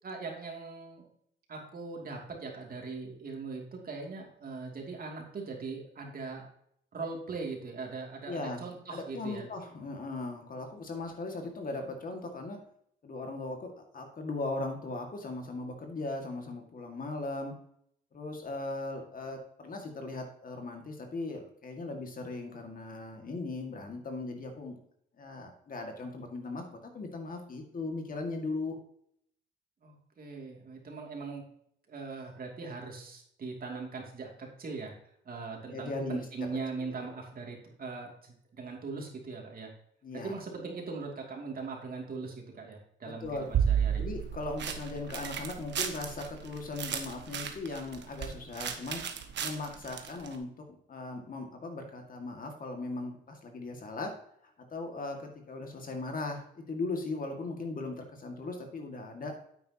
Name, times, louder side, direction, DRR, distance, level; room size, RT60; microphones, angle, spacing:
voice 1, 0.0-1.1 1.5-6.5 6.9-9.5 29.8-31.4 31.9-34.9 35.2-39.7 40.1-44.0, right 4 dB, 45° right, 0 dB, 2.7 m, -40 dB
voice 2, 8.3-8.6 8.9-12.6 13.0-17.5 18.1-24.8 25.2-28.8 35.7-36.2 37.0-37.1 40.0-40.4 43.0-43.5 44.0-49.0 49.4-54.1 54.7-59.3, left 2 dB, 45° left, 3 dB, 2.1 m, -38 dB
sound 1, 43.2-50.4, right 8 dB, 65° right, 1.2 m, -33 dB
9.5 x 8.6 x 2.9 m, 0.69 s
cardioid pair, 90°, 20 cm